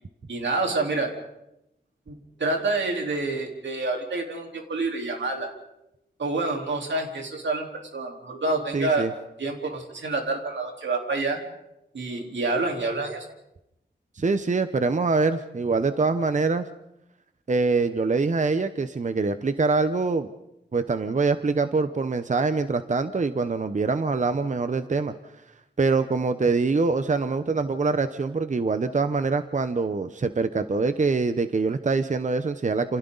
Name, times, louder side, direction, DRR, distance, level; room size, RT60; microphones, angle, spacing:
voice 1, 0.3-1.1 2.1-5.5 6.2-9.1 9.4-11.4 11.9-13.2, right 3 dB, 90° right, 1 dB, 3.9 m, -28 dB
voice 2, 8.7-9.1 14.2-16.6 17.5-20.3 20.7-25.1 25.8-33.0, right 4 dB, 40° right, 10 dB, 0.9 m, -24 dB
28.5 x 28.5 x 4.0 m, 0.86 s
wide cardioid pair, 110°, 18 cm